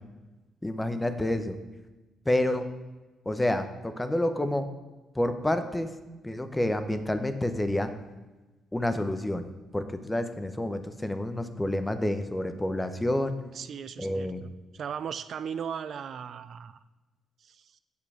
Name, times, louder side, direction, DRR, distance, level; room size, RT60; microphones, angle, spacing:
voice 1, 0.6-1.6 2.3-2.7 3.3-4.7 5.1-5.9 6.2-7.9 8.7-9.5 9.7-13.4 14.0-14.4, left 1 dB, 10° left, 9 dB, 0.9 m, -28 dB
voice 2, 13.5-16.8 17.4-17.8, right 7 dB, 60° right, 13 dB, 0.4 m, -38 dB
8.5 x 6.8 x 4.9 m, 1.2 s
cardioid pair, 90°, 0 cm